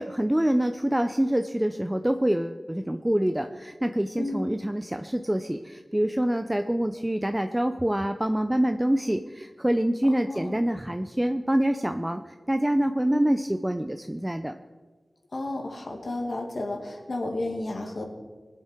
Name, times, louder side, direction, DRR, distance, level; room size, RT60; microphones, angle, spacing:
voice 1, 0.0-14.5, right 1 dB, 10° right, 7 dB, 0.5 m, -26 dB
voice 2, 4.2-4.5 10.3-10.6 13.1-13.4 15.3-18.0, left 2 dB, 65° left, 2 dB, 2.3 m, -32 dB
21.5 x 7.6 x 4.5 m, 1.3 s
wide cardioid pair, 85°, 0 cm